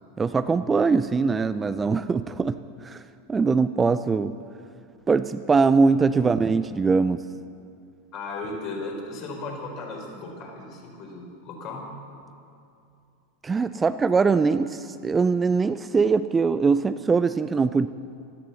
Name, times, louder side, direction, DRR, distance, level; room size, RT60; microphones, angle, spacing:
voice 1, 0.2-2.6 2.8-3.0 3.3-4.3 5.1-7.2 13.4-17.9, right 4 dB, 20° right, 12 dB, 0.4 m, -22 dB
voice 2, 8.1-11.9, left 3 dB, 45° left, 0 dB, 4.7 m, -36 dB
15.5 x 13.0 x 6.9 m, 2.6 s
figure-of-eight pair, 90°, 0 cm